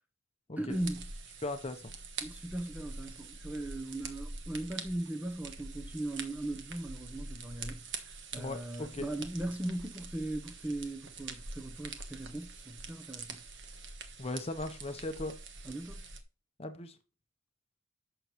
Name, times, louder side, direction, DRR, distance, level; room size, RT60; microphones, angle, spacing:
voice 1, 0.6-1.1 2.2-13.4 15.6-16.0, right 1 dB, 5° right, 0.8 m, -38 dB
sound 1, 0.7-16.2, right 4 dB, 60° right, 1.3 m, -45 dB
voice 2, 1.4-1.9 8.4-9.1 14.2-15.3 16.6-17.0, left 2 dB, 30° left, 0.8 m, -38 dB
11.0 x 6.9 x 3.1 m
head